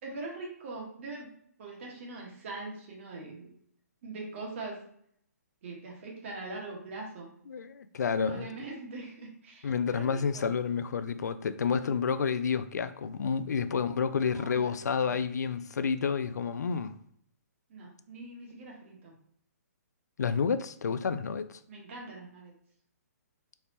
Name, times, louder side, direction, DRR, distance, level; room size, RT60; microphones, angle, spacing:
voice 1, 0.0-1.3 1.6-3.5 4.0-4.8 5.6-7.3 8.1-10.6 14.2-15.2 17.7-19.1 21.7-22.5, right 3 dB, 45° right, 1.4 m, -42 dB
voice 2, 7.5-8.5 9.6-16.9 20.2-21.6, left 6 dB, 85° left, 0.3 m, -30 dB
4.2 x 3.4 x 2.9 m
hypercardioid pair, 155°, 9 cm